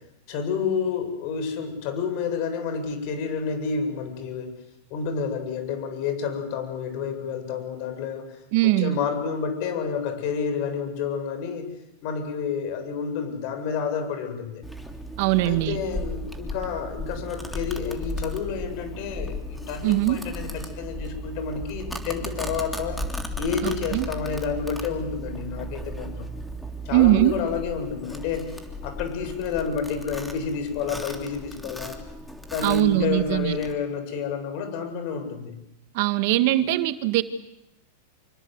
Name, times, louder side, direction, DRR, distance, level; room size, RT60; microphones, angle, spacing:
voice 1, 0.3-4.5 4.9-8.4 8.8-11.7 12.0-14.6 15.4-23.0 23.4-26.3 26.8-28.5 28.8-32.0 32.5-35.5 36.6-36.7, left 6 dB, 50° left, 8 dB, 7.8 m, -29 dB
voice 2, 8.5-9.0 15.2-15.8 19.8-20.2 23.6-24.1 26.9-27.3 32.6-33.5 35.9-37.2, right 16 dB, 55° right, 11 dB, 1.7 m, -21 dB
Domestic sounds home sounds, 14.6-33.7, equal, 5° left, 3.2 m, -36 dB
27.0 x 25.0 x 8.1 m, 0.81 s
supercardioid pair, 135°, 0 cm